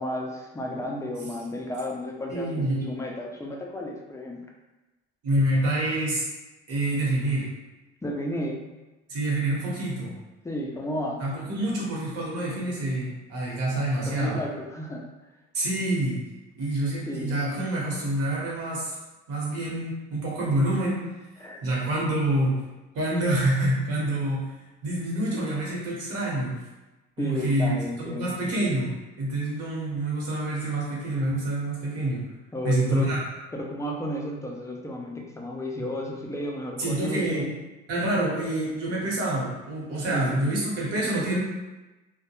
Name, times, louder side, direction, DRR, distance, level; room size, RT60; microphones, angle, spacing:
voice 1, 0.0-4.4 8.0-8.7 10.4-11.2 14.1-15.1 17.1-17.4 21.4-21.6 27.2-28.3 32.5-33.1 33.5-37.6 40.1-40.4, left 1 dB, 10° left, 0 dB, 0.3 m, -33 dB
voice 2, 2.3-2.9 5.2-6.2 6.7-7.5 9.1-10.1 11.2-14.4 15.5-16.2 16.6-18.9 19.3-21.0 21.6-22.6 22.9-24.5 24.8-26.6 27.2-27.7 28.0-32.2 32.6-33.2 35.8-35.9 36.8-37.5 37.9-41.4, right 1 dB, 55° right, -4 dB, 1.0 m, -27 dB
2.2 x 2.2 x 2.9 m, 1.1 s
cardioid pair, 100°, 29 cm